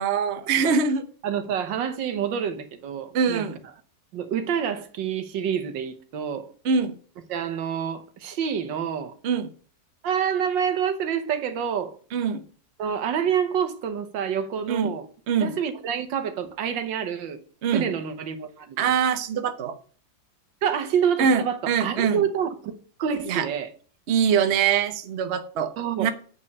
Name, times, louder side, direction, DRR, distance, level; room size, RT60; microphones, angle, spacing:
voice 1, 0.0-1.1 3.1-3.6 6.6-6.9 9.2-9.5 12.1-12.4 14.7-14.9 15.3-15.5 17.6-17.9 18.8-19.8 21.2-22.2 23.3-23.5 24.1-25.7 26.0-26.1, right 6 dB, 60° right, 0.7 m, -23 dB
voice 2, 1.2-3.5 4.1-6.5 7.3-9.1 10.0-12.0 12.8-15.1 15.4-17.4 17.7-18.9 20.6-22.7 23.0-23.7 25.8-26.1, right 8 dB, 75° right, 1.6 m, -27 dB
8.4 x 5.4 x 5.2 m
omnidirectional pair, 2.1 m